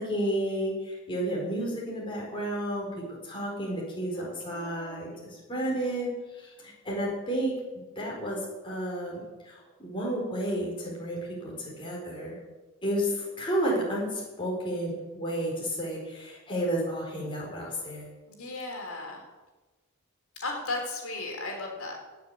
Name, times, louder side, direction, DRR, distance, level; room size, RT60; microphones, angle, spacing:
voice 1, 0.0-2.9 3.2-5.1 5.5-6.1 6.6-7.5 8.0-8.4 8.6-9.5 9.8-12.4 12.8-18.1, right 1 dB, 25° left, -3 dB, 4.7 m, -31 dB
voice 2, 4.1-5.1 18.3-19.2 20.4-22.0, left 2 dB, 80° left, 1 dB, 3.8 m, -36 dB
18.0 x 7.2 x 8.3 m, 1.2 s
head